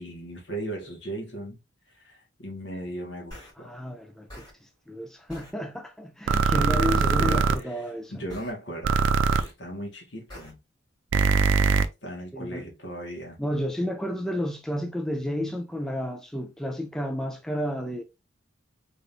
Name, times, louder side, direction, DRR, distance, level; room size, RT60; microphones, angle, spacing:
voice 1, 0.0-1.6 1.9-3.7 6.6-10.6 12.0-13.4, right 1 dB, 70° left, 1.6 m, -37 dB
sound 1, 3.3-3.5 4.3-4.5 5.3-5.5 6.3-6.5 7.3-7.5 8.3-8.5 9.3-9.5 10.3-10.5, left 1 dB, 20° left, 2.6 m, -43 dB
voice 2, 3.6-4.4 4.9-8.1 12.3-12.6 13.4-18.0, equal, 5° left, 0.3 m, -31 dB
sound 2, 6.3-7.6 8.8-9.4 11.1-11.9, right 5 dB, 80° right, 0.4 m, -21 dB
3.9 x 3.6 x 2.5 m
head